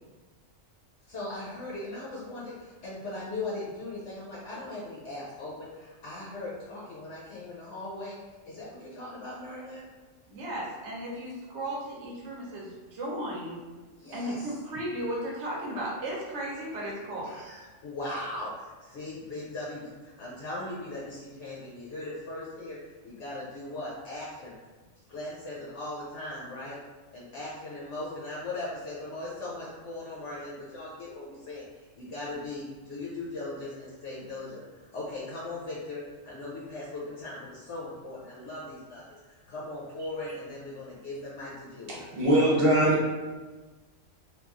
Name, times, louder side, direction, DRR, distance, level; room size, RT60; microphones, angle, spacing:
voice 1, 1.1-8.2 8.5-9.8 14.0-14.5 17.2-22.8 23.0-24.5 25.1-26.8 27.1-39.0 39.5-42.0, left 2 dB, 65° left, -6 dB, 0.8 m, -39 dB
voice 2, 10.3-13.6 14.1-17.3, right 1 dB, 65° right, -3 dB, 1.0 m, -35 dB
voice 3, 41.9-43.1, right 1 dB, 30° right, -6 dB, 0.6 m, -22 dB
2.9 x 2.3 x 2.3 m, 1.3 s
omnidirectional pair, 1.3 m